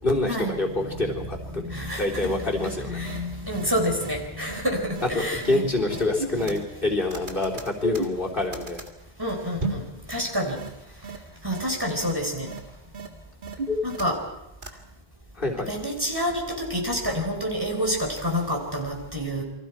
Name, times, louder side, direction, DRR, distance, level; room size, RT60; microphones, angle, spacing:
voice 1, 0.0-1.6 2.0-3.0 5.1-8.8 15.4-15.7, left 2 dB, 50° left, -2 dB, 3.9 m, -26 dB
voice 2, 1.0-1.3 1.6-5.6 6.4-6.6 6.9-7.0 9.2-9.8 10.1-10.6 11.4-12.5 13.8-14.2 15.7-19.4, equal, 20° right, 1 dB, 4.3 m, -28 dB
sound 1, 2.6-2.7 3.0-3.2 3.5-3.7 4.0-4.1 4.5-4.6 5.0-5.1 5.4-5.6 5.9-6.8 7.1-8.9 9.6-9.9 10.2-10.3 10.6-10.7 11.0-11.2 11.5-11.6 12.0-12.1 12.5-12.6 12.9-13.1 13.4-14.3 14.6-14.7, equal, 45° right, 2.2 m, -31 dB
28.5 x 24.5 x 4.7 m, 0.89 s
omnidirectional pair, 1.1 m